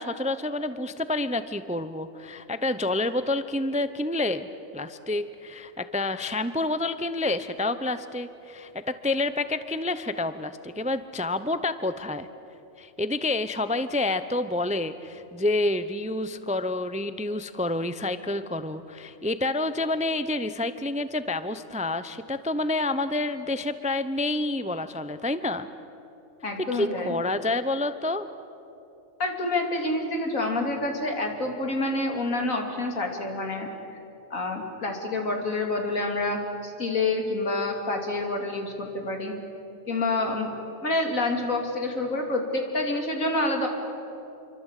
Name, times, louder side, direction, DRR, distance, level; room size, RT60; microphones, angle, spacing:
voice 1, 0.0-4.5 4.7-12.3 12.8-25.7 26.7-28.3, left 2 dB, 10° right, 12 dB, 0.5 m, -28 dB
voice 2, 26.4-27.2 29.2-33.7 34.3-39.3 39.9-40.5 40.8-43.7, left 2 dB, 80° left, 2 dB, 3.4 m, -28 dB
27.5 x 24.5 x 8.3 m, 2.8 s
omnidirectional pair, 1.4 m